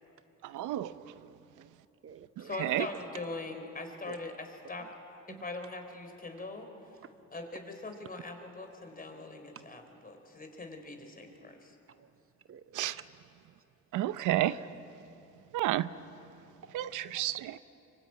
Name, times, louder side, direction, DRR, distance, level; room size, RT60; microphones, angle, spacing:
voice 1, 0.4-0.9 2.6-2.9 12.7-13.0 13.9-14.6 15.5-15.9 16.7-17.6, right 14 dB, 85° right, 14 dB, 0.8 m, -30 dB
voice 2, 1.0-1.7 2.0-2.5 4.1-4.2 5.3-5.4 12.5-13.0 17.5-17.6, right 7 dB, 45° right, 11 dB, 0.8 m, -51 dB
voice 3, 2.4-4.9 5.3-6.7 7.3-11.7, left 2 dB, 30° left, 5 dB, 4.5 m, -42 dB
25.0 x 24.5 x 9.0 m, 2.9 s
cardioid pair, 90°, 30 cm